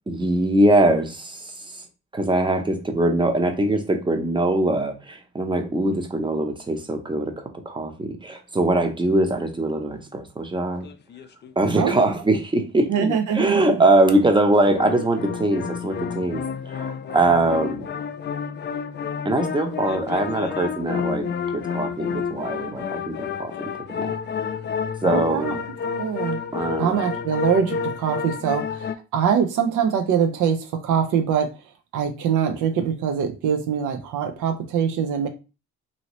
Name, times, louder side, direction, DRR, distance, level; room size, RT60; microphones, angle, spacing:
voice 1, 0.1-1.9 2.1-10.9 11.6-17.9 19.2-24.2 25.0-25.6 26.5-27.0, right 2 dB, 15° right, 0.7 m, -22 dB
sound 1, 10.8-12.0 14.7-28.9, left 6 dB, 35° left, 0.4 m, -30 dB
voice 2, 12.9-13.7 25.0-25.5 26.0-26.4 26.8-31.5 31.9-35.3, right 7 dB, 80° right, 0.6 m, -23 dB
2.8 x 2.7 x 3.0 m
cardioid pair, 90°, 30 cm